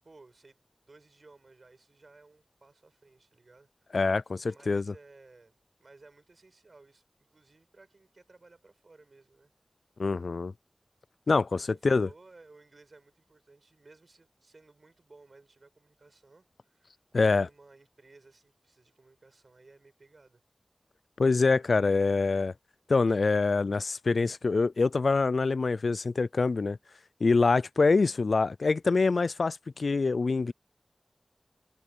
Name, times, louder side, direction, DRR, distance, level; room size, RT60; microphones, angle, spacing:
voice 1, 0.0-4.0 4.5-9.5 11.5-20.4 23.1-23.2 23.7-23.8, right 3 dB, 65° right, 7.8 m, -57 dB
voice 2, 3.9-4.8 10.0-10.5 11.3-11.5 11.8-12.1 17.1-17.5 21.2-22.5 22.9-26.8 27.2-30.5, left 4 dB, 80° left, 0.3 m, -25 dB
wide cardioid pair, 65°, 0 cm